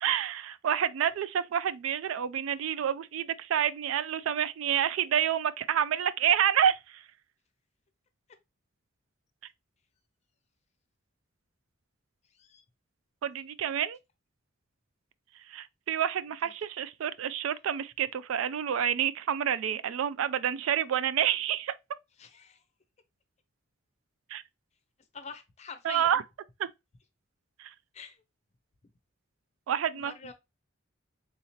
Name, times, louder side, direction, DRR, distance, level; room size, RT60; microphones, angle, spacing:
voice 1, 0.0-7.0 13.2-14.0 15.5-21.7 24.3-24.4 25.8-26.2 26.6-26.7 27.6-27.7 29.7-30.1, right 9 dB, 85° right, 0.3 m, -28 dB
voice 2, 22.2-22.6 25.1-26.2 27.9-28.2 29.9-30.3, left 5 dB, 35° left, 0.5 m, -45 dB
3.7 x 2.8 x 2.9 m
head